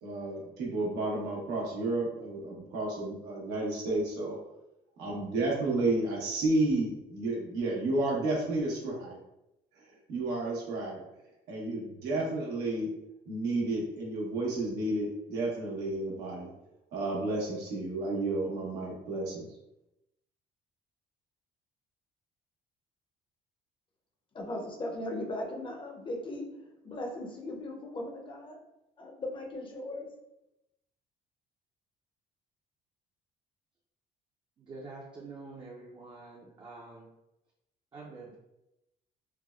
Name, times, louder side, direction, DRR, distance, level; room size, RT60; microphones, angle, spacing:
voice 1, 0.0-4.4 5.0-9.2 10.1-11.0 11.5-12.9 13.3-16.5 16.9-19.4, right 2 dB, 90° right, -4 dB, 1.0 m, -31 dB
voice 2, 24.3-26.5 26.8-28.6 29.0-30.1, left 1 dB, 30° left, 2 dB, 0.6 m, -38 dB
voice 3, 34.6-37.1 37.9-38.4, right 3 dB, 30° right, -3 dB, 0.5 m, -46 dB
3.3 x 2.1 x 2.4 m, 0.89 s
cardioid pair, 110°, 17 cm